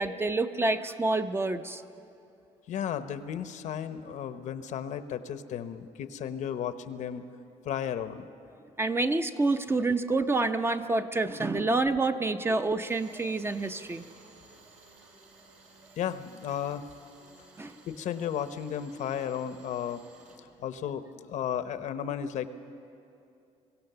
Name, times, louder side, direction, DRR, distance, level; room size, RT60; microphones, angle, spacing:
voice 1, 0.0-1.8 8.8-14.0 17.6-17.7, right 2 dB, 20° right, 8 dB, 0.6 m, -28 dB
voice 2, 2.7-7.2 7.6-8.3 16.0-16.8 17.9-20.0 20.6-22.5, left 9 dB, 70° left, 11 dB, 0.9 m, -34 dB
Tools, 12.9-20.4, right 3 dB, 80° right, 3.3 m, -56 dB
23.5 x 16.5 x 6.8 m, 2.7 s
cardioid pair, 115°, 13 cm